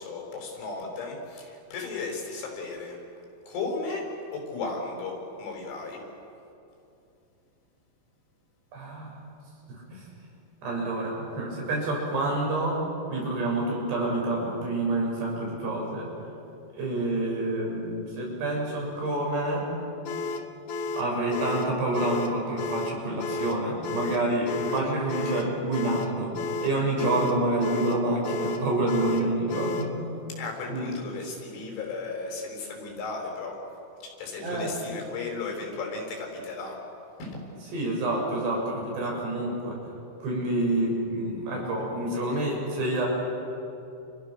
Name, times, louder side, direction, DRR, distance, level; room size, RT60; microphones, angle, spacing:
voice 1, 0.0-3.0 3.5-6.0 30.3-33.6 34.0-36.8 37.2-37.4, left 3 dB, 85° left, 1 dB, 7.5 m, -35 dB
voice 2, 8.7-9.1 9.7-10.0 10.6-12.8 13.1-16.1 16.7-19.6 21.0-26.3 26.6-29.9 30.7-31.0 34.4-34.8 37.7-39.8 40.2-43.1, right 1 dB, 60° right, -2 dB, 8.7 m, -28 dB
sound 1, 20.0-30.0, left 3 dB, 70° left, 1.9 m, -33 dB
30.0 x 29.5 x 6.7 m, 2.7 s
omnidirectional pair, 5.4 m